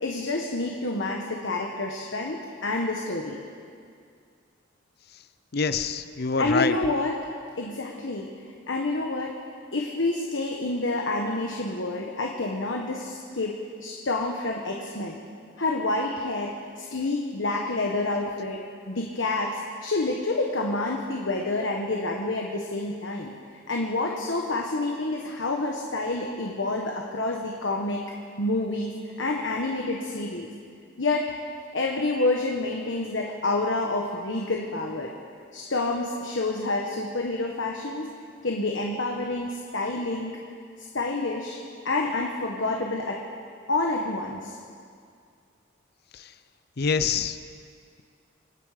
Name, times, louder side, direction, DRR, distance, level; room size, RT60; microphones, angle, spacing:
voice 1, 0.0-3.4 6.4-7.2 7.6-8.3 8.7-9.4 9.7-15.2 15.6-23.3 23.7-28.0 28.4-30.5 31.0-31.4 31.7-35.1 35.5-38.1 38.4-40.4 40.8-41.6 41.8-43.2 43.7-44.6, left 2 dB, 70° left, 0 dB, 1.3 m, -28 dB
voice 2, 5.5-6.7 46.1-46.2 46.8-47.4, left 5 dB, 55° left, 12 dB, 0.6 m, -25 dB
27.0 x 9.5 x 5.1 m, 2.3 s
head